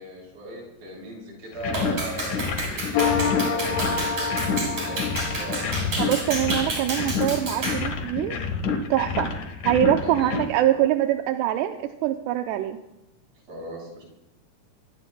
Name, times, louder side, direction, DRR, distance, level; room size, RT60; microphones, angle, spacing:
voice 1, 0.0-5.6 10.0-10.4 13.5-14.0, right 1 dB, 55° right, -3 dB, 8.8 m, -38 dB
sound 1, 1.5-10.5, left 5 dB, 60° left, 2.5 m, -29 dB
Clapping, 1.7-7.9, right 2 dB, 40° right, 7.0 m, -31 dB
sound 2, 2.9-6.3, left 6 dB, 80° left, 3.2 m, -28 dB
voice 2, 6.0-8.4 8.9-9.3 9.7-12.8, right 12 dB, 80° right, 5 dB, 2.7 m, -24 dB
27.0 x 20.5 x 2.3 m, 0.90 s
omnidirectional pair, 5.0 m